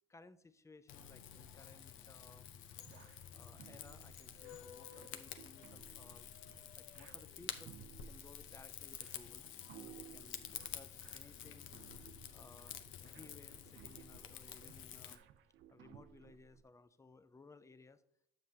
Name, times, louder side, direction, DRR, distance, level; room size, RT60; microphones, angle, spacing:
voice 1, 0.1-2.5 2.8-6.4 6.7-7.8 8.0-9.4 9.8-11.9 12.3-15.2 15.7-18.0, left 3 dB, 15° left, 12 dB, 0.4 m, -61 dB
Rain / Fire, 0.9-15.2, left 10 dB, 90° left, 0.6 m, -50 dB
sound 1, 2.8-16.6, right 10 dB, 80° right, 0.5 m, -60 dB
7.6 x 7.3 x 2.7 m, 0.75 s
cardioid pair, 90°, 20 cm